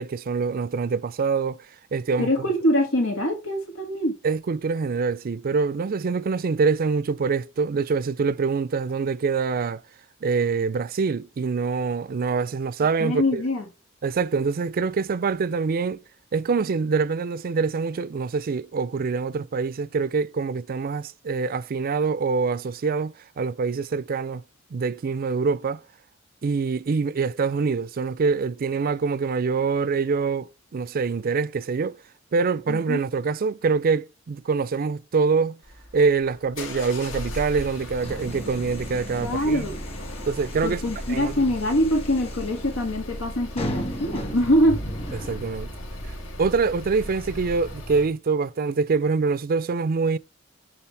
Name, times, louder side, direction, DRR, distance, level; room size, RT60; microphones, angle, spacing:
voice 1, 0.0-1.6 1.9-2.3 4.2-9.8 10.2-13.4 14.0-16.0 16.3-24.4 24.7-25.8 26.4-32.0 32.3-35.6 35.9-39.7 40.3-40.8 41.1-41.4 45.2-45.7 46.1-50.2, right 4 dB, 45° right, 0.4 m, -25 dB
voice 2, 2.2-4.1 13.0-13.6 32.7-33.0 39.2-39.8 40.6-44.8, equal, 90° left, 1.8 m, -23 dB
sound 1, 35.6-48.1, left 1 dB, 70° left, 1.8 m, -37 dB
sound 2, 38.0-46.2, equal, 30° left, 1.6 m, -37 dB
6.9 x 5.7 x 3.3 m
head